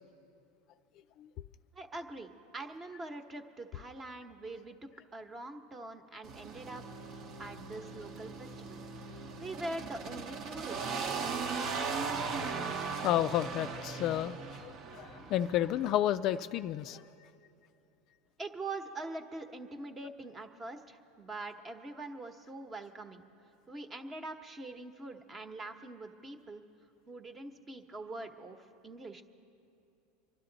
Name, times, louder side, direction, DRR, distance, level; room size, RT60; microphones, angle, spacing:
voice 1, 1.7-6.8 7.4-8.8 9.1-11.4 18.4-23.2 23.7-26.6 27.1-29.2, right 2 dB, 20° right, 7 dB, 1.0 m, -44 dB
sound 1, 6.2-15.9, right 5 dB, 45° right, 0.9 m, -39 dB
voice 2, 13.0-17.0, left 12 dB, 50° left, 11 dB, 0.3 m, -31 dB
25.0 x 12.0 x 4.0 m, 2.7 s
supercardioid pair, 125°, 0 cm